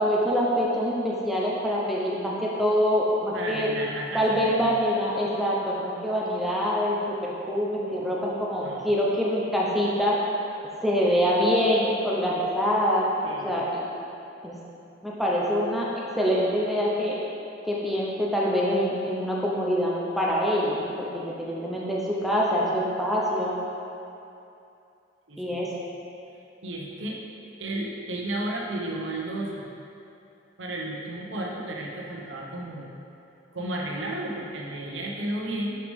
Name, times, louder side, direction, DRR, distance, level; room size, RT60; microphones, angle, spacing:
voice 1, 0.0-3.7 4.1-10.2 10.8-13.8 14.4-14.5 15.0-17.2 17.6-23.6 25.4-25.7, equal, ahead, -6 dB, 0.7 m, -25 dB
voice 2, 3.3-4.6 8.6-8.9 13.2-13.5 25.3-25.5 26.6-27.2 27.6-29.7 30.6-32.9 33.5-35.8, right 1 dB, 70° right, -1 dB, 1.0 m, -33 dB
6.9 x 6.2 x 3.6 m, 2.7 s
head